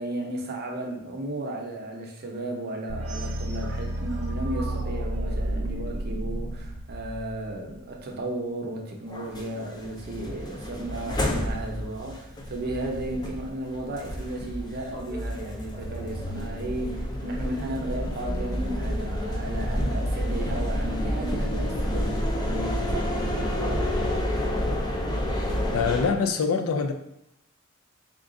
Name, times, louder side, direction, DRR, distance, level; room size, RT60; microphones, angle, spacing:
voice 1, 0.0-24.2, right 1 dB, 50° right, 1 dB, 0.6 m, -34 dB
sound 1, 2.9-7.8, right 1 dB, 90° right, 0.6 m, -31 dB
sound 2, 9.1-26.1, equal, 20° left, 0.4 m, -29 dB
voice 2, 25.7-26.9, left 5 dB, 80° left, 6 dB, 0.4 m, -24 dB
3.7 x 2.3 x 3.7 m, 0.86 s
head